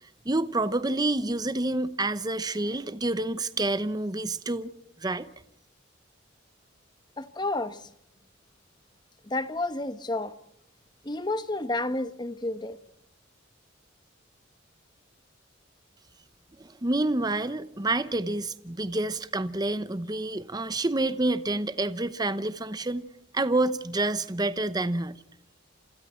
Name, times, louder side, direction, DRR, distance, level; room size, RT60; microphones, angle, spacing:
voice 1, 0.2-4.7 5.0-5.3 16.6-23.0 23.3-25.2, right 2 dB, 20° right, 0.8 m, -28 dB
voice 2, 7.2-7.9 9.2-10.3 11.0-12.8, left 2 dB, 20° left, 1.2 m, -30 dB
30.0 x 27.0 x 4.4 m
head